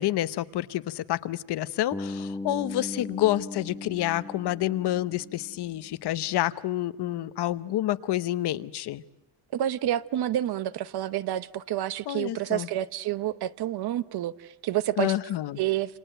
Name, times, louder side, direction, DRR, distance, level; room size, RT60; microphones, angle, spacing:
voice 1, 0.0-9.0 12.1-12.7 15.0-15.6, left 14 dB, 70° left, 1.0 m, -28 dB
Bass guitar, 1.9-6.0, left 2 dB, 10° left, 1.0 m, -38 dB
voice 2, 9.5-15.1 15.6-16.0, right 12 dB, 65° right, 0.9 m, -29 dB
28.5 x 26.5 x 7.9 m
cardioid pair, 160°, 41 cm